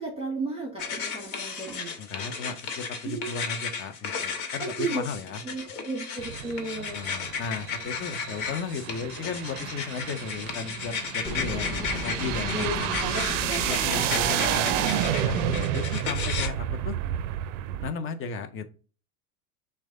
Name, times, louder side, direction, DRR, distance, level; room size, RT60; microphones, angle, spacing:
voice 1, 0.0-1.9 3.0-3.3 4.6-5.0 5.4-7.0 12.5-12.7 13.0-14.1, right 3 dB, 15° right, -1 dB, 1.8 m, -34 dB
sound 1, 0.8-16.5, left 5 dB, 55° left, 1.3 m, -34 dB
voice 2, 2.0-5.7 6.8-12.9 13.6-17.0 17.8-18.7, left 5 dB, 25° left, 8 dB, 0.8 m, -35 dB
sound 2, 6.2-17.9, right 12 dB, 55° right, 0.5 m, -31 dB
sound 3, 11.2-15.6, equal, 10° left, 1.2 m, -34 dB
6.1 x 2.3 x 3.8 m, 0.37 s
hypercardioid pair, 95°, 45 cm